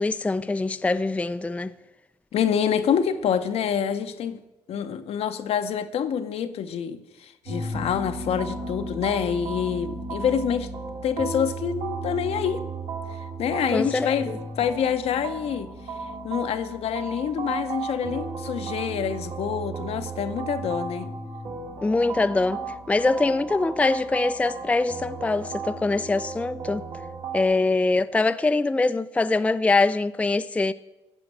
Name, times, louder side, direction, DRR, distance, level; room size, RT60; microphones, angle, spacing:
voice 1, 0.0-1.7 13.7-14.4 21.8-22.6 22.9-26.8 27.3-30.7, left 3 dB, 10° left, 0.4 m, -23 dB
voice 2, 2.3-4.4 4.7-10.7 11.0-12.6 13.4-15.7 16.2-21.1, left 8 dB, 65° left, 0.8 m, -26 dB
sound 1, 7.4-27.4, right 3 dB, 70° right, 2.2 m, -34 dB
13.5 x 5.2 x 7.6 m
supercardioid pair, 65°, 11 cm